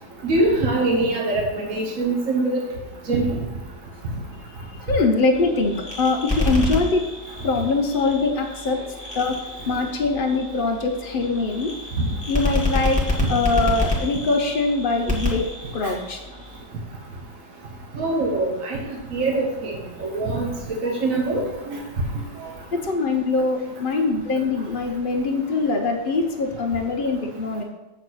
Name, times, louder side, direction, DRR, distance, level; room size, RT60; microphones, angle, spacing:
voice 1, 0.2-2.6 3.1-3.4 13.2-13.3 17.9-21.4 21.7-21.8, right 2 dB, 50° right, -1 dB, 1.4 m, -23 dB
voice 2, 4.9-7.1 7.4-8.8 9.1-9.4 9.7-11.7 12.3-13.0 13.3-15.4 15.7-16.2 22.7-27.6, left 3 dB, 85° left, 1 dB, 0.4 m, -23 dB
sound 1, 5.3-16.6, left 1 dB, 5° right, 1.6 m, -28 dB
7.5 x 4.0 x 6.2 m, 1.0 s
omnidirectional pair, 2.0 m